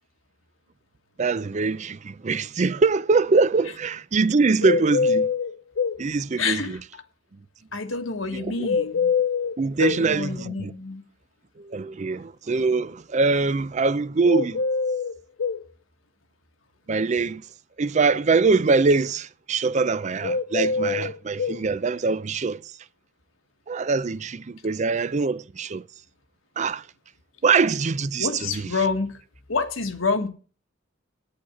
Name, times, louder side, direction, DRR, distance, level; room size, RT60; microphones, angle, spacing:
voice 1, 1.2-5.3 6.0-6.8 8.3-8.7 9.6-10.7 11.6-14.6 16.9-17.4 17.8-22.7 23.7-25.8 26.6-26.9 27.4-28.7, right 4 dB, 35° right, 0.5 m, -23 dB
sound 1, 4.6-6.0 8.6-10.0 14.2-15.6 20.2-21.6, left 5 dB, 75° left, 0.5 m, -24 dB
voice 2, 6.4-6.8 7.7-9.1 9.8-11.0 28.2-29.2 29.5-30.3, left 4 dB, 90° left, 1.5 m, -28 dB
8.7 x 8.7 x 7.6 m
head